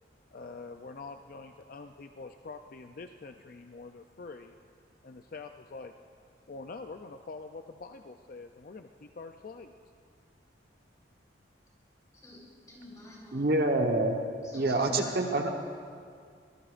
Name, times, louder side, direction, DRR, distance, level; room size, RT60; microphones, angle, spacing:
voice 1, 0.3-4.6 5.0-5.9 6.5-9.7, left 3 dB, 50° left, 6 dB, 0.4 m, -45 dB
voice 2, 12.1-13.5 14.4-15.4, left 1 dB, 20° left, -4 dB, 4.2 m, -48 dB
voice 3, 13.3-14.1 14.5-15.5, right 2 dB, 55° right, 3 dB, 1.1 m, -26 dB
24.0 x 19.0 x 2.5 m, 2.2 s
head